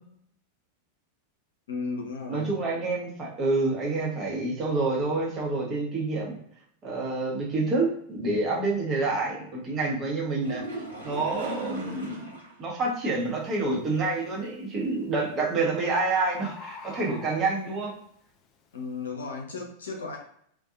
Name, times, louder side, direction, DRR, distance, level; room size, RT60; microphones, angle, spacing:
voice 1, 1.7-2.6 18.7-20.2, left 4 dB, 65° left, 1 dB, 0.7 m, -35 dB
voice 2, 2.3-6.4 6.8-10.6 11.0-17.9, right 3 dB, 25° right, -2 dB, 0.9 m, -28 dB
sound 1, 10.4-12.6 13.0-13.1 13.5-13.6 17.4-17.5, right 1 dB, 80° right, 1.0 m, -39 dB
Bird, 12.8-13.1 13.6-14.1 15.1-15.2 15.5-15.6 15.7-15.8 16.1-17.8 18.4-18.5, left 5 dB, 35° left, 0.4 m, -44 dB
2.5 x 2.3 x 2.4 m, 0.66 s
figure-of-eight pair, 90°, 0 cm